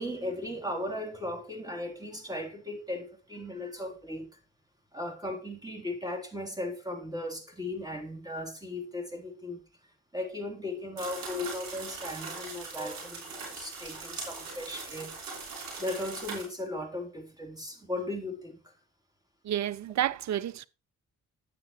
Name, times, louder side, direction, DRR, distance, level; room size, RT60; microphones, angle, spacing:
voice 1, 0.0-4.3 4.9-9.6 10.1-15.2 15.8-18.7, left 1 dB, 10° right, 3.2 m, -37 dB
sound 1, 11.0-16.4, right 4 dB, 75° right, 3.7 m, -41 dB
voice 2, 19.4-20.7, right 11 dB, 55° right, 0.6 m, -30 dB
9.2 x 7.5 x 3.0 m
hypercardioid pair, 45°, 34 cm